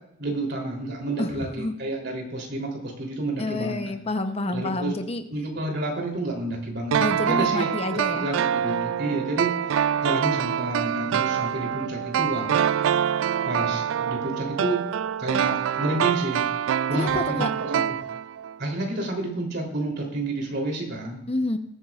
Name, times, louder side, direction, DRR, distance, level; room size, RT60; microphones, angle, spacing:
voice 1, 0.2-4.0 4.5-4.9 5.3-12.5 13.4-14.8 15.2-16.4 16.9-17.9 18.6-21.2, right 1 dB, 55° right, 0 dB, 3.2 m, -30 dB
voice 2, 1.2-1.8 3.4-5.2 7.0-8.3 16.9-17.5 21.3-21.6, left 2 dB, 30° left, 8 dB, 0.8 m, -28 dB
sound 1, 6.9-18.6 18.8-18.9, right 9 dB, 80° right, 0.3 m, -25 dB
20.0 x 9.3 x 2.4 m, 0.78 s
head